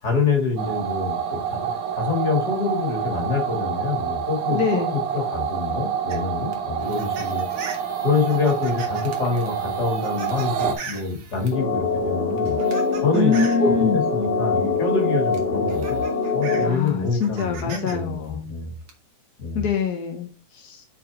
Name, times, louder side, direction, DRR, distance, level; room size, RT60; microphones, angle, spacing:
voice 1, 0.0-7.4 8.0-12.6 13.0-16.0 16.3-18.7 19.4-19.7, left 4 dB, 35° left, 1 dB, 2.9 m, -26 dB
sound 1, 0.6-10.7, right 8 dB, 80° right, 2.8 m, -27 dB
voice 2, 4.5-5.0 13.1-14.1 16.6-18.5 19.5-20.9, left 5 dB, 60° left, 3 dB, 1.0 m, -25 dB
sound 2, 6.1-11.6 12.3-13.7 14.9-15.0 15.3-17.9 18.2-18.9, right 5 dB, 60° right, 2.5 m, -40 dB
sound 3, 11.5-16.7, left 4 dB, 20° left, 1.9 m, -23 dB
7.5 x 5.7 x 3.6 m, 0.37 s
omnidirectional pair, 3.3 m